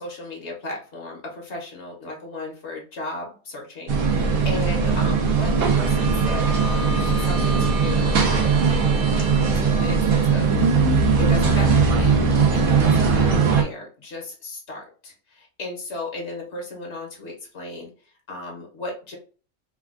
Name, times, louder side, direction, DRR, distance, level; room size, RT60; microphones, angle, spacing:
voice 1, 0.0-8.6 9.2-9.3 9.5-19.2, left 2 dB, 65° left, 0 dB, 1.1 m, -36 dB
sound 1, 3.9-13.6, right 5 dB, 90° right, 1.1 m, -19 dB
Wind instrument woodwind instrument, 4.9-10.1, equal, 50° left, 0.7 m, -38 dB
3.3 x 2.3 x 2.3 m, 0.37 s
omnidirectional pair, 1.3 m